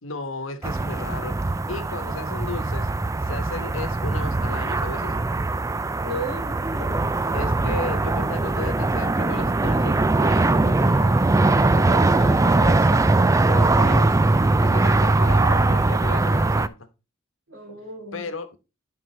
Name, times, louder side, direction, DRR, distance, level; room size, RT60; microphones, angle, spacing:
voice 1, 0.0-1.4 1.7-2.9 3.2-5.2 7.3-11.1 11.6-13.0 13.5-14.1 14.6-16.9 18.1-18.6, left 3 dB, 65° left, 1.2 m, -34 dB
sound 1, 0.6-16.7, right 2 dB, 15° right, 0.3 m, -21 dB
voice 2, 6.0-7.0 13.7-14.1 17.5-18.2, right 1 dB, 60° right, 3.7 m, -34 dB
11.0 x 5.4 x 3.3 m
head